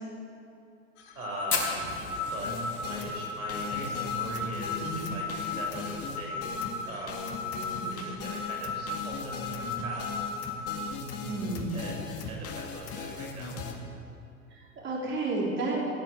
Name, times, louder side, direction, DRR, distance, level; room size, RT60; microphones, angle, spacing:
sound 1, 1.0-10.8, left 3 dB, 50° left, 2.3 m, -36 dB
voice 1, 1.1-1.8 2.3-2.5 2.8-6.5 6.9-7.4 7.9-10.0 11.7-13.6, right 2 dB, 75° right, -2 dB, 4.3 m, -42 dB
Fire, 1.5-6.0 6.3-6.4 6.6-6.7 7.1-7.5 8.0-8.1 9.2-9.3, left 4 dB, 80° left, 4.0 m, -35 dB
sound 2, 2.4-13.7, left 5 dB, 35° left, 2.1 m, -38 dB
voice 2, 4.8-5.1 7.8-8.2 11.2-11.9 14.8-15.8, right 2 dB, 25° right, -3 dB, 3.4 m, -32 dB
16.0 x 9.1 x 7.8 m, 2.6 s
figure-of-eight pair, 90°, 43 cm